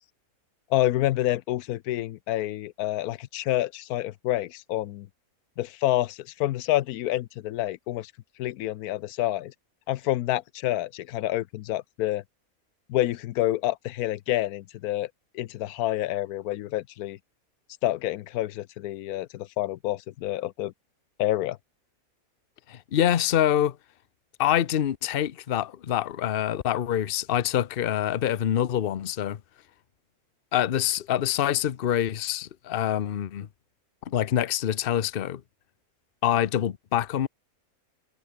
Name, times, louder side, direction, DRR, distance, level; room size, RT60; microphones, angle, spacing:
voice 1, 0.7-5.1 5.6-8.1 8.4-9.5 9.9-12.2 12.9-15.1 15.3-17.2 17.8-20.7 21.2-21.6, left 14 dB, 85° left, 1.1 m, -28 dB
voice 2, 22.7-23.8 24.4-29.4 30.5-33.5 34.1-35.4 36.2-37.3, left 11 dB, 50° left, 0.8 m, -25 dB
omnidirectional pair, 1.5 m